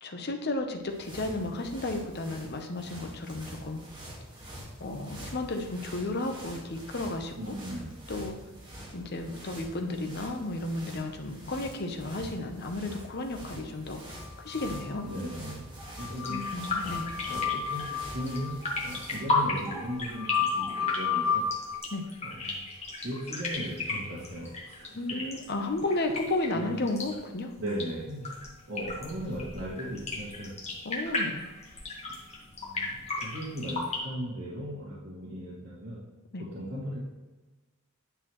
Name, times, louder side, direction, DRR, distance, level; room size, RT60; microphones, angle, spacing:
voice 1, 0.0-3.8 4.8-7.5 8.1-8.4 8.9-14.0 14.4-15.1 16.3-17.1 21.9-22.1 24.9-27.5 30.8-31.4 36.3-36.4, left 2 dB, 45° left, 5 dB, 0.8 m, -33 dB
sound 1, 0.6-19.4, equal, 20° right, 1.7 m, -45 dB
voice 2, 7.4-7.9 15.0-15.7 16.0-16.4 17.3-21.5 22.2-22.6 23.0-25.2 25.9-26.0 26.5-26.8 27.6-28.3 28.7-30.5 32.2-32.3 32.5-36.0 36.5-37.0, equal, 65° right, -10 dB, 2.1 m, -37 dB
sound 2, 14.2-15.2 15.5-15.6 15.8-21.8, left 7 dB, 5° right, 1.3 m, -32 dB
sound 3, 16.2-34.0, left 2 dB, 30° left, 1.5 m, -35 dB
9.8 x 6.6 x 3.1 m, 1.2 s
head